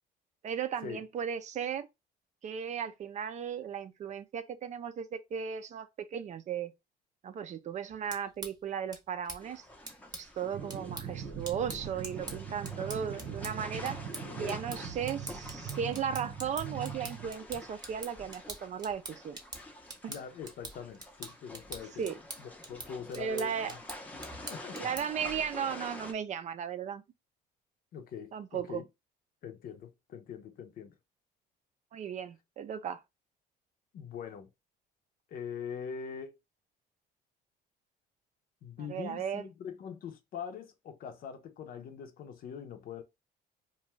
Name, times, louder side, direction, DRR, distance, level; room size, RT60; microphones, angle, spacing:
voice 1, 0.4-1.9 2.4-6.7 7.2-9.6 10.1-14.0 14.4-19.4 20.0-20.1 22.0-22.1 23.2-23.7 24.8-27.0 28.3-28.8 31.9-33.0 38.9-39.4, right 7 dB, 45° right, 0.4 m, -36 dB
sound 1, 7.9-25.3, right 2 dB, 25° right, 0.8 m, -46 dB
sound 2, 9.4-26.1, left 1 dB, 10° left, 0.6 m, -48 dB
sound 3, 10.5-17.3, right 8 dB, 80° right, 0.9 m, -42 dB
voice 2, 14.3-14.9 20.1-22.1 22.4-23.8 24.4-24.9 27.9-28.8 29.4-30.9 33.9-34.5 35.3-36.4 38.6-43.0, left 7 dB, 60° left, 0.6 m, -43 dB
2.5 x 2.3 x 3.0 m
cardioid pair, 110°, 17 cm